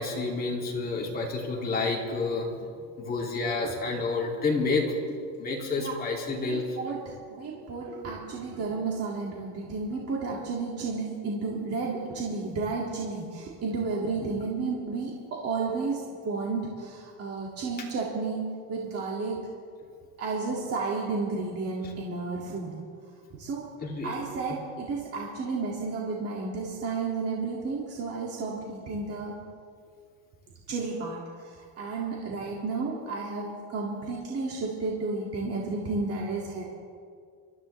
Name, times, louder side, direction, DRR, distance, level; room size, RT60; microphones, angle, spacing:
voice 1, 0.0-2.7 3.0-7.0 14.2-14.3 23.8-24.1, left 3 dB, 25° left, -2 dB, 2.7 m, -29 dB
voice 2, 6.4-18.4 18.7-19.4 20.2-22.8 23.3-23.6 24.0-29.3 30.7-36.6, right 4 dB, 40° right, -3 dB, 2.3 m, -32 dB
27.0 x 14.0 x 3.3 m, 2.1 s
cardioid pair, 150°, 39 cm